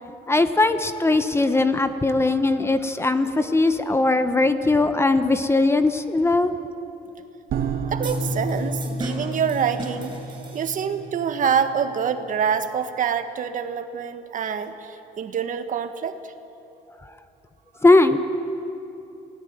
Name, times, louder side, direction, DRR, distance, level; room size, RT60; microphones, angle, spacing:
voice 1, 0.3-6.5 17.8-18.2, left 2 dB, 15° left, 10 dB, 1.2 m, -19 dB
sound 1, 7.5-12.8, right 2 dB, 65° right, 2.2 m, -31 dB
voice 2, 7.9-10.1 10.5-16.2, right 7 dB, 50° right, 8 dB, 1.7 m, -26 dB
sound 2, 8.0-11.1, right 2 dB, 25° right, 7.1 m, -38 dB
28.5 x 18.0 x 9.0 m, 2.9 s
cardioid pair, 110°, 17 cm